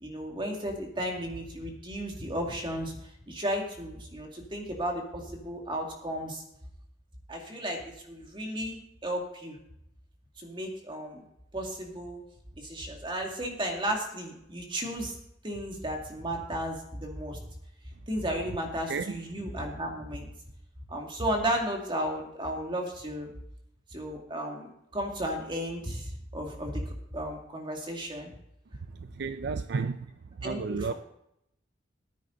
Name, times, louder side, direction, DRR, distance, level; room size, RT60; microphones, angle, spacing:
voice 1, 0.0-3.0 3.3-6.4 7.3-9.5 10.4-11.2 11.5-12.2 12.6-15.1 15.4-17.4 18.1-20.3 20.9-23.3 23.9-26.8 27.1-28.3 30.4-30.9, equal, 25° right, 2.3 m, -34 dB
voice 2, 18.9-19.2 28.9-30.1 30.4-30.9, right 5 dB, 65° right, 0.4 m, -32 dB
14.5 x 9.2 x 3.9 m
head